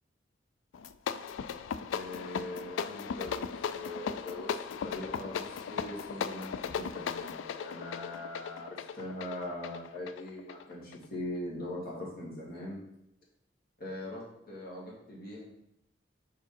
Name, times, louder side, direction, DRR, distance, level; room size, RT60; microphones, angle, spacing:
sound 1, 0.7-11.1, left 7 dB, 80° left, 0.3 m, -37 dB
voice 1, 1.9-12.8 13.8-15.5, left 1 dB, 55° left, -5 dB, 2.3 m, -41 dB
5.2 x 4.8 x 4.4 m, 0.83 s
head